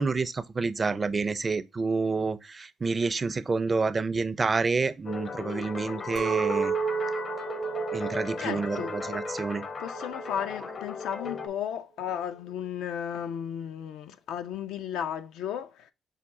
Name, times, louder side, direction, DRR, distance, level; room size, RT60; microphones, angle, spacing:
voice 1, 0.0-6.7 7.9-9.6, right 4 dB, 30° right, 0.4 m, -28 dB
sound 1, 5.1-11.5, left 5 dB, 50° left, 0.7 m, -37 dB
Chink clink, 6.2-11.3, right 7 dB, 70° right, 0.7 m, -33 dB
voice 2, 8.4-8.9 9.8-15.9, left 9 dB, 90° left, 0.4 m, -34 dB
5.6 x 2.3 x 3.6 m
cardioid pair, 90°, 0 cm